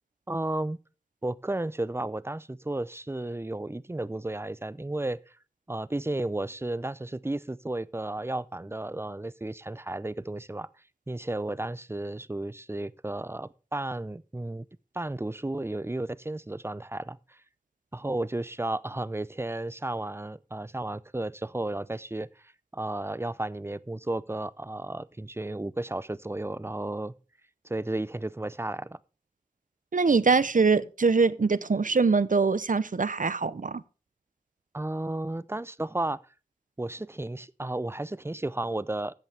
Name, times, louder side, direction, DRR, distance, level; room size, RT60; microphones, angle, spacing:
voice 1, 0.3-0.8 1.2-5.2 5.7-10.7 11.1-14.7 14.9-17.4 17.9-22.3 22.7-27.1 27.6-29.0 34.7-36.2 36.8-39.1, right 2 dB, 15° right, 0.5 m, -33 dB
voice 2, 29.9-33.8, right 4 dB, 70° right, 0.6 m, -23 dB
13.0 x 8.3 x 3.4 m
wide cardioid pair, 55°, 14 cm